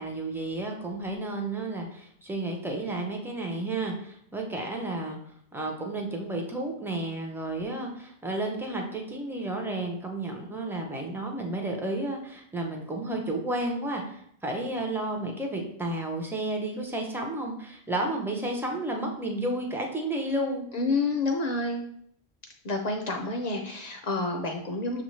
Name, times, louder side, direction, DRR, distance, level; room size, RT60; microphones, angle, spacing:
voice 1, 0.0-5.2 5.5-20.6, right 2 dB, 5° right, 1 dB, 0.3 m, -32 dB
voice 2, 20.7-21.8 22.6-25.0, left 3 dB, 55° left, 3 dB, 0.5 m, -29 dB
6.2 x 2.5 x 3.1 m, 0.68 s
omnidirectional pair, 1.1 m